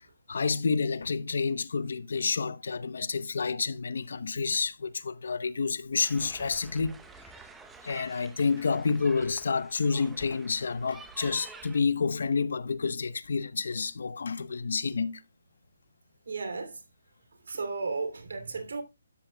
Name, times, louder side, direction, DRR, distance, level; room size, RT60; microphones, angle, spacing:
voice 1, 0.3-7.0 7.8-15.2, left 5 dB, 70° left, 0.8 m, -29 dB
sound 1, 6.0-11.8, right 4 dB, 5° right, 0.7 m, -50 dB
voice 2, 16.3-16.8 17.5-18.8, right 4 dB, 75° right, 2.7 m, -34 dB
12.5 x 7.8 x 2.2 m
hypercardioid pair, 160°, 0 cm